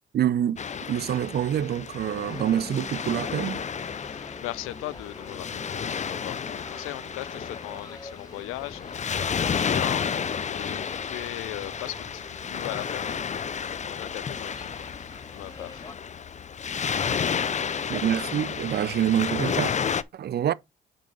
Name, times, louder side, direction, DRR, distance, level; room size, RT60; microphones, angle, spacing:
voice 1, 0.1-0.6 0.9-3.6 17.9-19.7 20.1-20.5, right 10 dB, 50° right, 0.5 m, -26 dB
Waves surf, 0.6-20.0, left 7 dB, 35° left, 0.5 m, -31 dB
sound 1, 2.3-15.9, left 3 dB, 20° left, 0.9 m, -45 dB
voice 2, 3.9-8.8 9.2-10.1 10.5-13.3 13.6-14.7 15.3-15.8, left 18 dB, 85° left, 0.5 m, -38 dB
5.3 x 5.2 x 5.3 m
supercardioid pair, 55°, 21 cm